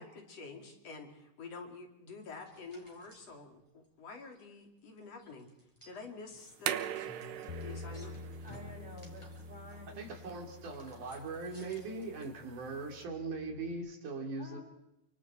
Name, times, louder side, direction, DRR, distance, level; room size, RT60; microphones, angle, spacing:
voice 1, 0.0-5.5 5.8-6.9 7.6-8.2, left 4 dB, 50° left, 4 dB, 3.8 m, -48 dB
sound 1, 2.3-3.4 3.8-3.9 4.1-4.5 4.9-12.3, left 2 dB, 10° left, 5.9 m, -58 dB
sound 2, 6.4-13.0, right 11 dB, 80° right, 2.8 m, -43 dB
Bass guitar, 7.5-13.7, left 3 dB, 75° left, 3.3 m, -49 dB
voice 2, 8.4-10.1 14.4-14.6, left 1 dB, 10° right, -1 dB, 6.0 m, -50 dB
voice 3, 10.0-14.6, right 3 dB, 65° right, 3 dB, 4.6 m, -40 dB
29.5 x 25.5 x 4.5 m, 0.85 s
omnidirectional pair, 3.9 m